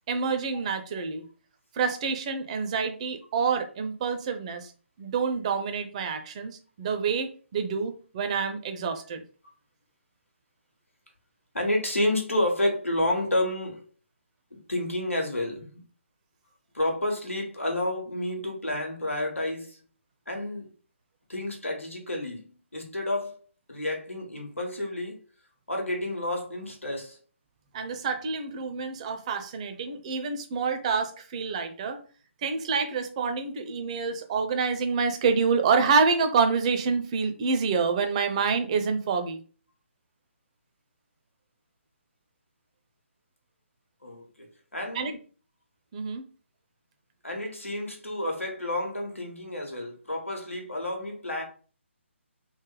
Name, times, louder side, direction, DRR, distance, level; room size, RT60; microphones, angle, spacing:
voice 1, 0.1-1.2 1.7-4.7 5.0-9.2 27.7-32.0 32.4-39.4 44.9-45.2 45.9-46.2, right 5 dB, 30° right, 0.5 m, -27 dB
voice 2, 11.5-13.8 14.7-15.8 16.7-19.8 20.3-20.7 21.3-23.4 23.7-25.2 25.7-27.2 44.0-45.1 47.2-51.4, left 1 dB, 85° left, 1.2 m, -30 dB
3.3 x 2.0 x 3.8 m
figure-of-eight pair, 145°, 7 cm